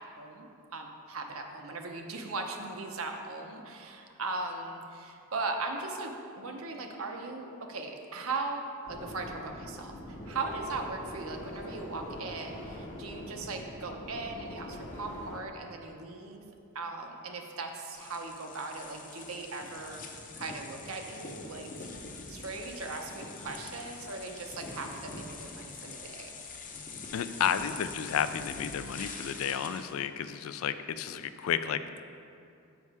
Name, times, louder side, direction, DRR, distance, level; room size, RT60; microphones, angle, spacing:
voice 1, 0.0-8.6 8.9-16.4 16.7-20.0 20.4-21.9 22.3-26.4, right 3 dB, 70° right, 3 dB, 0.8 m, -38 dB
sound 1, 8.9-15.4, left 1 dB, 80° left, 1.2 m, -43 dB
sound 2, 17.9-30.0, left 4 dB, 35° left, 0.7 m, -44 dB
voice 2, 27.1-31.8, left 8 dB, 65° left, 12 dB, 0.3 m, -32 dB
7.1 x 5.4 x 4.7 m, 2.5 s
head